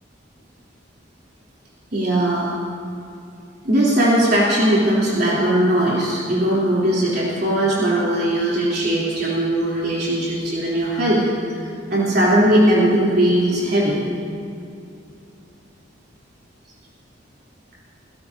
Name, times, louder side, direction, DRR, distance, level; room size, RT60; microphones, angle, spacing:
voice 1, 1.9-2.5 3.6-11.6 11.9-14.0, right 1 dB, 55° right, -7 dB, 3.7 m, -19 dB
29.0 x 17.0 x 2.9 m, 2.6 s
head